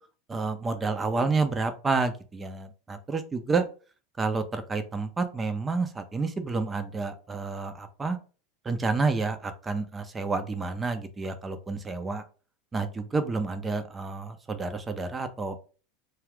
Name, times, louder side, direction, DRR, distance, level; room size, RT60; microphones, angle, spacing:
voice 1, 0.3-3.7 4.2-8.2 8.6-12.2 12.7-15.6, right 4 dB, 20° right, 9 dB, 0.5 m, -29 dB
2.3 x 2.3 x 3.4 m, 0.36 s
hypercardioid pair, 85°, 0 cm